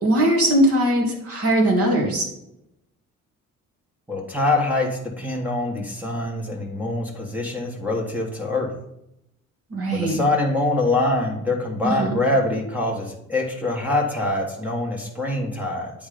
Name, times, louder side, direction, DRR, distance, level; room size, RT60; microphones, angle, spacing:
voice 1, 0.0-2.3 9.7-10.2 11.8-12.2, right 1 dB, 50° right, 1 dB, 2.0 m, -20 dB
voice 2, 4.1-8.7 9.9-15.9, left 2 dB, 5° right, 0 dB, 1.5 m, -24 dB
8.9 x 3.6 x 5.1 m, 0.81 s
cardioid pair, 140°, 31 cm